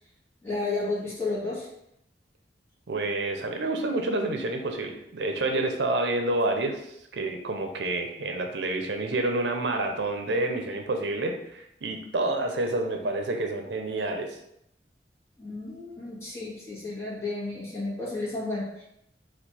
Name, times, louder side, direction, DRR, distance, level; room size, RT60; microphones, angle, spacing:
voice 1, 0.4-1.7 15.4-18.8, left 3 dB, 15° left, -7 dB, 1.3 m, -32 dB
voice 2, 2.9-6.8 7.1-14.4, right 2 dB, 85° right, 4 dB, 0.6 m, -28 dB
4.4 x 2.4 x 4.2 m, 0.77 s
head